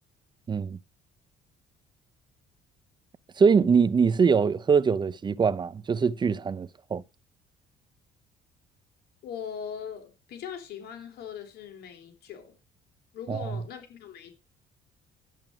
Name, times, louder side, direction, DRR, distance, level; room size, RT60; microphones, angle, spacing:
voice 1, 0.5-0.8 3.4-7.0 13.3-13.4, right 5 dB, 25° right, 0.6 m, -23 dB
voice 2, 9.2-12.6 13.1-14.3, left 7 dB, 70° left, 3.4 m, -40 dB
11.0 x 8.8 x 5.0 m
cardioid pair, 110°, 17 cm